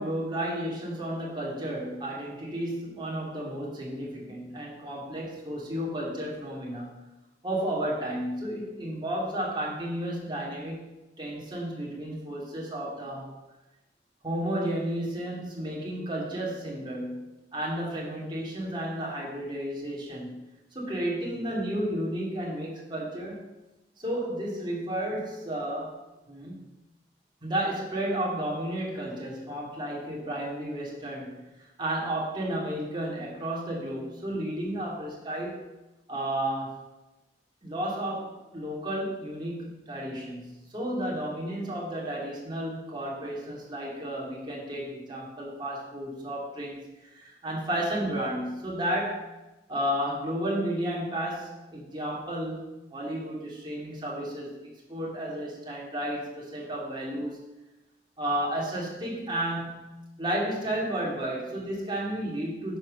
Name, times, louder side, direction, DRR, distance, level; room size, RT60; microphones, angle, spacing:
voice 1, 0.0-7.0 7.4-10.9 11.2-13.3 14.2-20.5 20.7-23.4 24.0-26.0 26.3-26.6 27.4-31.4 31.8-35.7 36.1-36.9 37.6-49.2 49.7-52.6 52.9-54.6 54.9-57.4 58.2-62.8, right 1 dB, 25° right, -4 dB, 2.6 m, -32 dB
10.5 x 4.9 x 6.5 m, 1.0 s
head